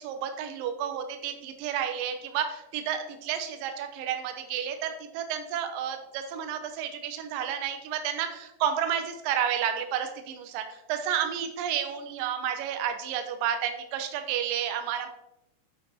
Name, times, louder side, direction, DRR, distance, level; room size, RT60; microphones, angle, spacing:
voice 1, 0.0-15.1, right 9 dB, 80° right, 6 dB, 2.0 m, -31 dB
8.3 x 6.1 x 4.2 m, 0.84 s
omnidirectional pair, 5.3 m